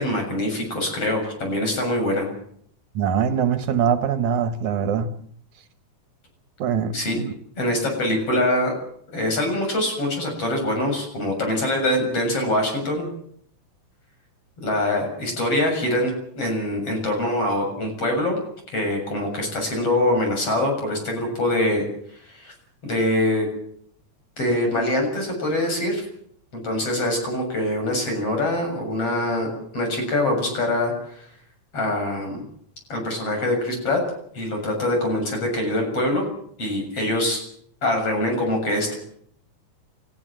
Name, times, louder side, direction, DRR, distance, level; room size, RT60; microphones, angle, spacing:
voice 1, 0.0-2.3 6.9-7.2 7.6-8.7 9.1-13.1 14.6-18.4 18.7-21.8 22.3-22.5 22.8-23.5 24.4-26.0 26.6-31.3 31.7-32.4 32.9-34.0 34.3-36.3 36.6-37.4 37.8-39.0, left 1 dB, 45° left, 3 dB, 8.2 m, -24 dB
voice 2, 3.0-5.1 6.6-7.3, right 7 dB, 70° right, 10 dB, 2.6 m, -23 dB
29.5 x 15.0 x 7.7 m, 0.66 s
omnidirectional pair, 3.6 m